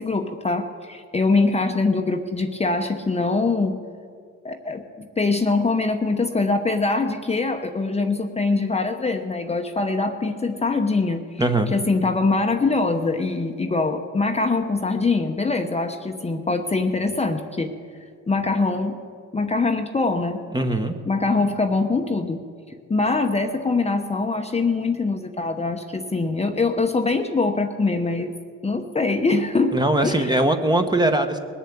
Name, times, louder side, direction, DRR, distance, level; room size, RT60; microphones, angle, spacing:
voice 1, 0.0-3.8 4.4-11.4 11.7-17.7 18.3-19.0 19.3-20.4 21.1-22.4 22.9-28.3 28.6-29.8 30.0-30.4, left 3 dB, 20° left, 5 dB, 0.9 m, -23 dB
voice 2, 11.4-11.8 20.5-20.9 29.7-31.4, right 1 dB, 15° right, 6 dB, 1.1 m, -21 dB
20.0 x 7.4 x 8.7 m, 2.1 s
cardioid pair, 90°, 30 cm